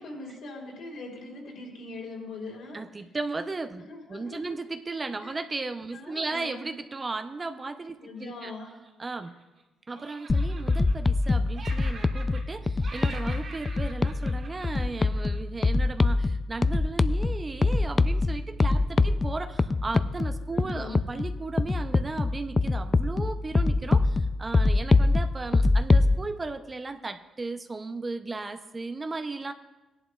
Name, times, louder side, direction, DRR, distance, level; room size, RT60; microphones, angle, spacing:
voice 1, 0.0-2.8 3.9-4.6 5.2-5.4 5.9-6.7 8.0-8.8 19.0-19.1 20.5-21.0, left 2 dB, 75° left, -2 dB, 3.3 m, -41 dB
voice 2, 2.7-3.8 4.1-8.5 9.0-9.3 9.9-29.5, right 3 dB, 25° right, 8 dB, 0.6 m, -35 dB
Laughter, 8.4-9.6 9.9-11.3 11.5-12.6 12.8-15.4, right 3 dB, 60° right, 2.7 m, -45 dB
sound 1, 10.3-26.1, left 3 dB, 25° left, 0.3 m, -25 dB
16.5 x 11.0 x 2.3 m, 1.1 s
cardioid pair, 90°, 0 cm